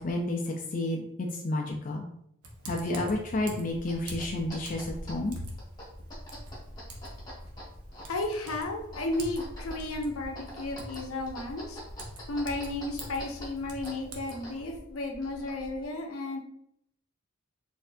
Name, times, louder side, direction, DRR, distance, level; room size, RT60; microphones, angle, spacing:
voice 1, 0.0-2.1 2.7-5.4, left 2 dB, 40° left, 0 dB, 0.4 m, -31 dB
Typing, 2.4-14.8, right 1 dB, 90° right, 0.8 m, -46 dB
sound 1, 3.7-15.8, equal, 20° left, 1.2 m, -45 dB
voice 2, 8.1-11.8 12.3-16.4, left 2 dB, 75° left, 3 dB, 0.6 m, -33 dB
4.2 x 2.7 x 2.6 m, 0.73 s
head